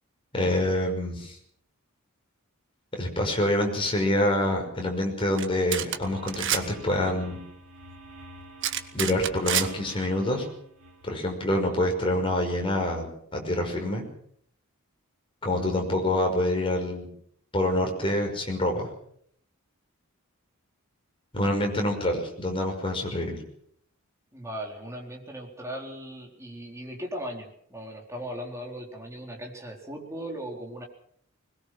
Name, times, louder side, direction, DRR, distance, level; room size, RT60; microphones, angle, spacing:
voice 1, 0.3-1.4 2.9-7.4 8.9-10.5 11.0-14.0 15.4-17.1 17.5-18.9 21.3-23.4, left 1 dB, 25° left, 1 dB, 5.7 m, -26 dB
sound 1, 5.4-5.5 5.7-6.0 6.3-6.6 8.6-9.7, right 10 dB, 55° right, 1.5 m, -27 dB
sound 2, 6.0-11.1, equal, 75° right, 7.7 m, -48 dB
voice 2, 24.3-30.8, equal, 15° right, 0 dB, 4.4 m, -38 dB
21.5 x 21.0 x 6.2 m, 0.66 s
head